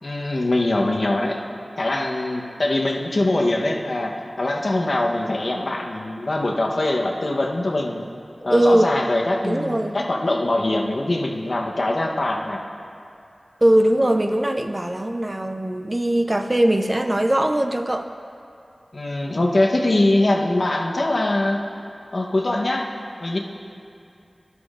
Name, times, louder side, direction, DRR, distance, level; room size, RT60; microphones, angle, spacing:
voice 1, 0.0-1.4 1.8-8.0 8.4-12.6 18.9-21.6 22.1-22.9 23.2-23.4, left 2 dB, 65° left, 0 dB, 0.9 m, -22 dB
voice 2, 8.5-8.9 9.4-10.0 13.6-18.1, right 1 dB, 30° right, 6 dB, 0.5 m, -20 dB
11.5 x 11.0 x 2.5 m, 2.5 s
wide cardioid pair, 50°, 0 cm